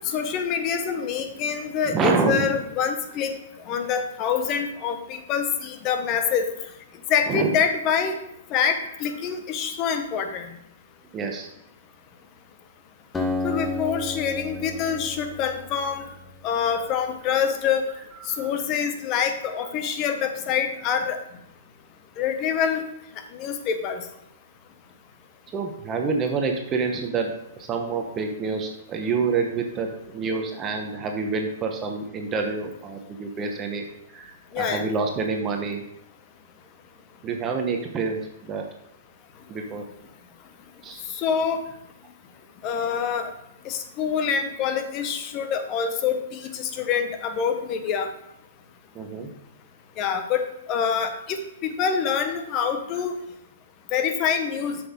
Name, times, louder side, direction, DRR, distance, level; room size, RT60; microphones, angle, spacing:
voice 1, 0.0-3.3 3.7-6.5 7.1-8.1 8.5-10.5 13.4-16.0 16.4-17.9 18.4-21.2 22.2-22.8 23.3-24.0 34.5-34.8 41.1-41.6 42.6-43.3 43.6-48.1 50.0-51.4 51.6-53.2 53.9-54.8, left 7 dB, 35° left, 7 dB, 1.1 m, -26 dB
voice 2, 1.9-2.5 7.3-7.5 11.1-11.5 16.8-16.9 18.2-18.6 25.5-27.3 27.6-33.8 34.1-34.3 34.6-35.8 37.2-38.7 39.5-39.8 40.8-41.0 48.9-49.3, right 4 dB, 25° right, 3 dB, 1.0 m, -27 dB
Acoustic guitar, 13.1-16.7, left 2 dB, 10° left, 1.0 m, -32 dB
7.6 x 6.2 x 3.6 m, 0.83 s
hypercardioid pair, 125°, 0 cm